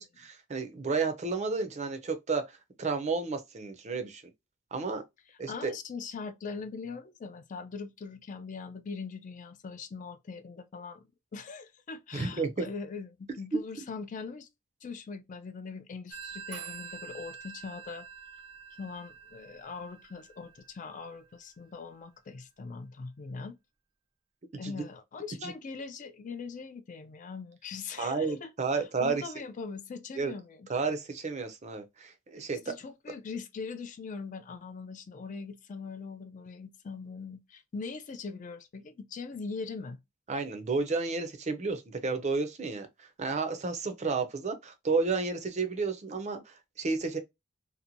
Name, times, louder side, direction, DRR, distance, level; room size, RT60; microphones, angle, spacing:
voice 1, 0.0-4.2 4.7-5.0 5.4-5.7 12.1-12.6 24.6-24.7 25.4-25.5 28.0-29.2 30.2-30.3 30.7-32.7 40.3-47.2, right 4 dB, 35° right, 0.5 m, -32 dB
voice 2, 5.3-14.5 14.8-18.1 18.8-23.6 24.6-30.7 32.7-40.0, left 4 dB, 35° left, 0.3 m, -41 dB
Telephone, 16.1-21.4, right 7 dB, 90° right, 0.5 m, -46 dB
2.8 x 2.1 x 2.5 m
head